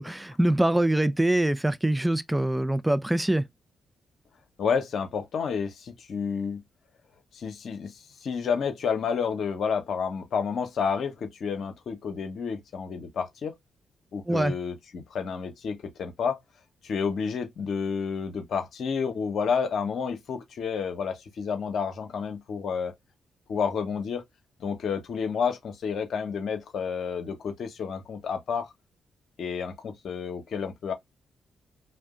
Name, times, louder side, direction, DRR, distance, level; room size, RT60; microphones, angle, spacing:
voice 1, 0.0-3.5 14.3-14.5, right 1 dB, 10° right, 0.4 m, -24 dB
voice 2, 4.6-6.6 7.3-13.5 14.1-16.4 16.8-22.9 23.5-24.2 24.6-28.7 29.4-30.9, left 6 dB, 65° left, 0.7 m, -30 dB
2.6 x 2.1 x 3.5 m
hypercardioid pair, 40°, 0 cm